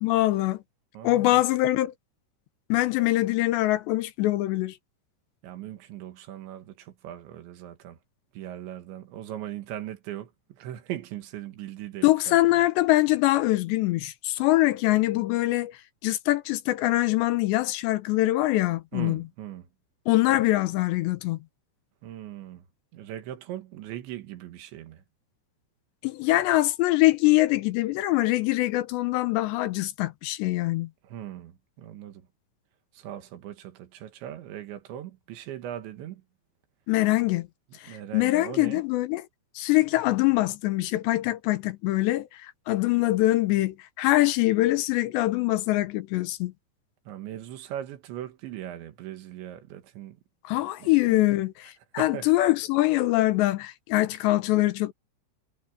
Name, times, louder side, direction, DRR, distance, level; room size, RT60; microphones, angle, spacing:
voice 1, 0.0-0.6 1.0-1.9 2.7-4.8 12.0-15.8 16.0-19.2 20.1-21.4 26.0-30.9 36.9-37.5 37.8-39.2 39.6-46.5 50.4-54.9, left 17 dB, 80° left, 3.0 m, -23 dB
voice 2, 0.9-1.4 5.4-8.0 8.3-12.6 18.9-19.7 22.0-22.6 22.9-25.0 31.0-32.3 32.9-36.2 37.7-38.8 47.1-50.2 50.8-51.4 52.0-52.3, right 12 dB, 80° right, 3.9 m, -39 dB
omnidirectional pair, 5.2 m